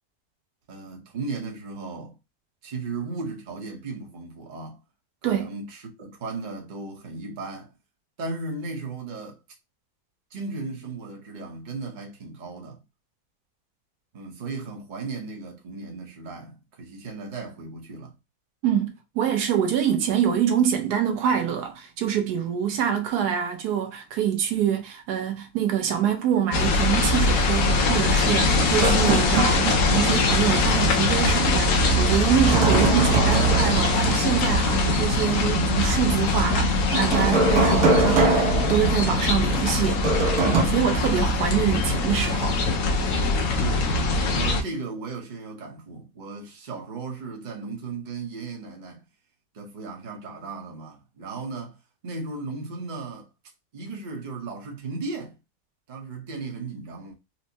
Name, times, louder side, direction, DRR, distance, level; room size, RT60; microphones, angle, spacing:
voice 1, 0.7-2.2 2.6-4.8 5.3-7.7 8.2-9.4 10.3-12.8 14.1-18.1 43.6-43.9 44.3-49.0 49.5-51.8 52.0-53.3 53.7-55.4 55.9-57.1, right 3 dB, 40° right, 0.8 m, -36 dB
voice 2, 18.6-40.0 40.4-42.6, right 9 dB, 85° right, 1.3 m, -25 dB
sound 1, 26.5-44.6, left 2 dB, 65° left, 0.9 m, -22 dB
sound 2, 28.8-30.3 30.6-30.7 32.3-34.3 36.9-39.4 40.0-40.6, right 3 dB, 70° right, 1.4 m, -23 dB
4.3 x 2.1 x 2.7 m
omnidirectional pair, 1.6 m